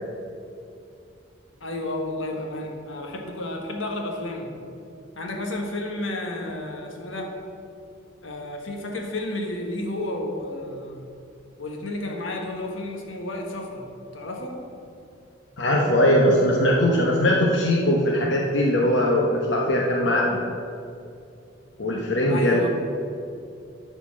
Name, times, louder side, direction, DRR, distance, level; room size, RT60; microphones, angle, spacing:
voice 1, 1.6-4.5 5.2-7.4 8.2-11.1 11.6-13.9 14.1-14.7 22.3-22.7, left 1 dB, 85° left, 1 dB, 1.4 m, -31 dB
voice 2, 15.6-20.4 21.8-22.6, left 1 dB, 65° left, -2 dB, 1.0 m, -20 dB
11.5 x 4.4 x 7.3 m, 2.5 s
head